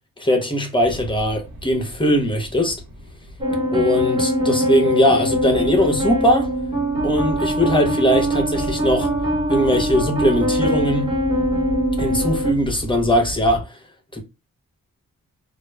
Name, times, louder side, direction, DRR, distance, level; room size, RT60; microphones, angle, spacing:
voice 1, 0.2-2.8 3.7-6.5 7.0-9.1 9.5-11.1 12.0-13.8 14.1-14.2, equal, 15° left, 0.8 m, -20 dB
sound 1, 0.8-13.6, equal, 55° right, 1.1 m, -35 dB
sound 2, 3.4-12.5, equal, 15° right, 1.0 m, -22 dB
2.2 x 2.1 x 3.1 m
cardioid pair, 70°, 34 cm